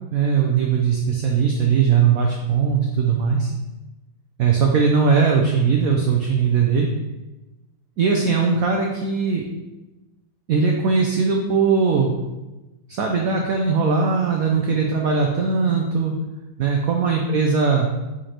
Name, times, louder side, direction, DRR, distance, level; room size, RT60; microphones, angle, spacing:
voice 1, 0.1-3.5 4.4-6.9 8.0-9.5 10.5-12.1 12.9-16.1 16.6-17.9, right 5 dB, 85° right, 1 dB, 0.7 m, -19 dB
5.0 x 4.4 x 4.3 m, 1.1 s
omnidirectional pair, 2.2 m